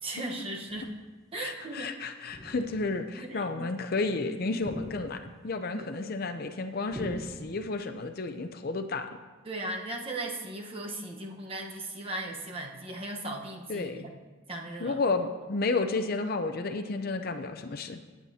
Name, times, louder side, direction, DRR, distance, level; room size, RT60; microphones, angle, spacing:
voice 1, 0.0-0.9 1.3-1.9 3.1-3.7 5.7-5.9 9.4-14.1 14.5-15.0, right 2 dB, 25° right, 1 dB, 1.1 m, -37 dB
sound 1, 0.7-1.1 2.3-3.0 4.6-5.5 6.9-7.9, equal, 5° left, 1.0 m, -43 dB
voice 2, 1.4-9.1 13.7-14.0 14.8-18.0, left 3 dB, 45° left, 7 dB, 0.6 m, -32 dB
17.5 x 9.4 x 2.8 m, 1.3 s
head